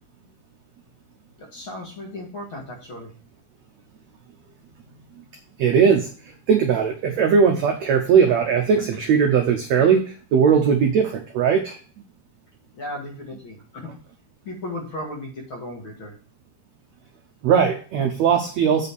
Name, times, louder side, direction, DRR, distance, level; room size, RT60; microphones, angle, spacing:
voice 1, 1.4-3.1 12.7-13.9 14.4-16.1, left 1 dB, 50° left, 0 dB, 1.7 m, -35 dB
voice 2, 5.6-6.1 6.5-11.8 17.4-18.9, right 6 dB, 85° right, 4 dB, 1.5 m, -19 dB
8.0 x 4.3 x 6.9 m, 0.40 s
omnidirectional pair, 4.3 m